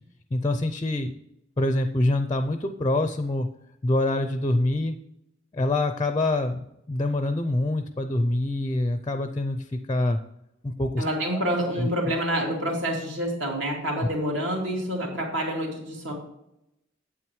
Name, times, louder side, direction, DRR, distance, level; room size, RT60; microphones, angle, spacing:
voice 1, 0.3-1.1 1.6-3.5 3.8-5.0 5.5-10.2 10.6-11.0 11.3-11.5 11.8-11.9, left 2 dB, 20° left, 8 dB, 0.4 m, -25 dB
voice 2, 11.0-16.1, equal, 70° right, -1 dB, 2.7 m, -27 dB
9.2 x 8.0 x 3.1 m, 0.81 s
head